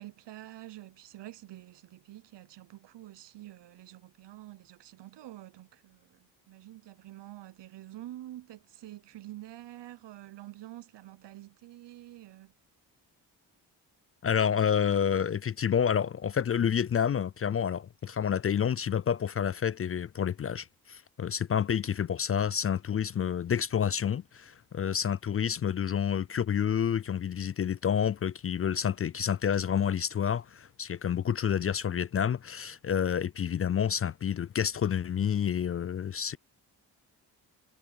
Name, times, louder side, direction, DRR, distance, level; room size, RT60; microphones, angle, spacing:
voice 1, 0.0-12.5, right 15 dB, 70° right, 0.9 m, -47 dB
voice 2, 14.2-36.4, left 8 dB, 35° left, 0.4 m, -29 dB
supercardioid pair, 50°, 44 cm